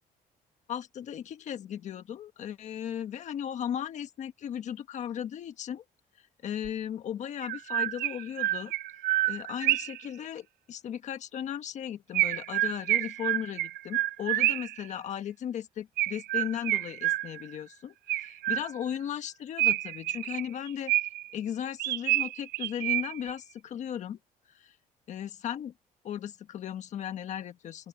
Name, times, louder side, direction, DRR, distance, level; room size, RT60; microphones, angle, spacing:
voice 1, 0.7-5.8 6.4-20.9 21.3-24.2 24.5-24.7 25.1-25.7 26.0-27.9, left 9 dB, 50° left, 1.3 m, -36 dB
Chirp tweet, 6.6-6.7 7.4-10.1 12.1-14.8 16.0-17.6 18.1-19.0 19.6-21.3 21.8-23.3, right 16 dB, 90° right, 0.5 m, -28 dB
open air
cardioid pair, 180°, 16 cm